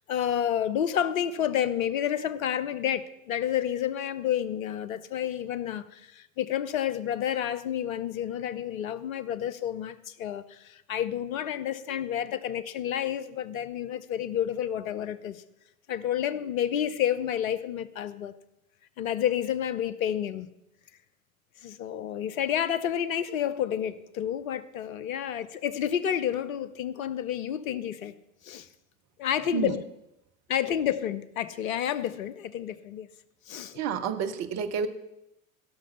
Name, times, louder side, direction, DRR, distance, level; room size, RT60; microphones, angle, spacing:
voice 1, 0.1-15.4 15.9-18.3 19.0-20.5 21.6-28.1 28.4-28.7 29.2-29.8 30.5-33.1 33.5-33.8, left 10 dB, 70° left, 16 dB, 0.7 m, -30 dB
voice 2, 33.7-34.9, right 6 dB, 40° right, 9 dB, 1.0 m, -29 dB
15.5 x 6.1 x 5.6 m, 0.88 s
figure-of-eight pair, 70°, 43 cm